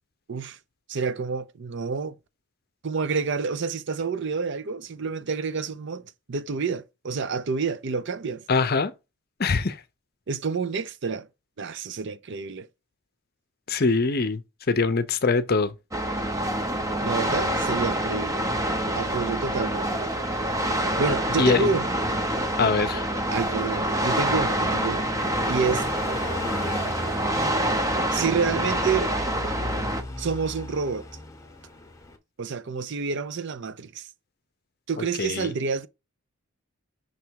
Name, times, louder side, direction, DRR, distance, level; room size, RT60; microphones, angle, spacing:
voice 1, 0.9-2.1 2.8-6.0 6.3-8.4 10.3-11.3 11.6-12.7 17.0-18.4 19.0-20.0 21.0-21.9 23.3-25.1 25.5-25.9 28.1-29.1 30.2-31.0 32.4-34.1 34.9-35.9, right 5 dB, 55° right, 0.5 m, -28 dB
voice 2, 8.5-8.9 9.4-9.8 13.7-14.4 14.7-15.7 21.4-21.7 22.6-23.0 35.0-35.5, left 4 dB, 45° left, 0.6 m, -23 dB
sound 1, 15.9-30.0, right 1 dB, 15° right, 0.7 m, -26 dB
Car passing by, 23.7-32.2, left 2 dB, 15° left, 0.9 m, -37 dB
6.1 x 3.4 x 4.6 m
head